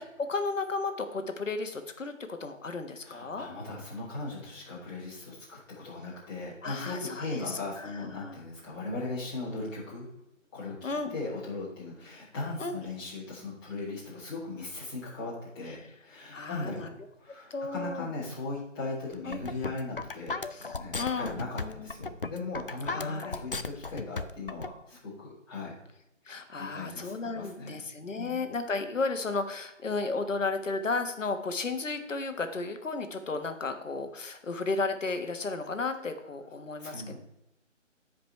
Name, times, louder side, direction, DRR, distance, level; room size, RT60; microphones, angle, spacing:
voice 1, 0.0-3.5 6.6-8.4 10.8-11.1 12.6-12.8 16.3-16.9 17.5-18.1 19.2-19.4 20.5-21.9 22.8-23.4 26.3-37.2, left 3 dB, 70° left, 7 dB, 1.4 m, -34 dB
voice 2, 3.0-10.1 10.5-16.9 17.2-25.7 26.3-27.8 28.1-28.4 36.8-37.2, left 3 dB, 15° left, -8 dB, 3.2 m, -38 dB
sound 1, 19.1-24.7, left 4 dB, 45° left, 0.4 m, -35 dB
14.5 x 5.1 x 3.2 m, 0.90 s
figure-of-eight pair, 165°, 39 cm